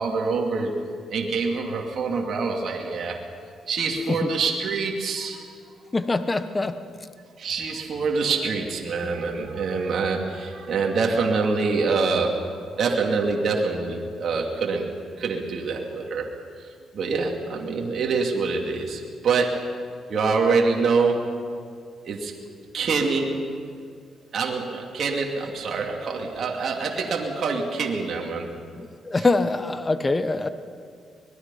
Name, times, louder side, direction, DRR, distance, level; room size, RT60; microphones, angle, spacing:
voice 1, 0.0-3.3 3.7-5.5 7.4-16.2 16.9-21.4 22.0-22.3 22.7-23.7 24.3-28.5 29.2-29.3, right 4 dB, 55° right, 0 dB, 2.7 m, -25 dB
voice 2, 5.9-6.7 9.0-9.1 28.8-30.5, left 3 dB, 20° left, 11 dB, 1.0 m, -24 dB
25.0 x 20.5 x 5.7 m, 2.2 s
cardioid pair, 90°, 0 cm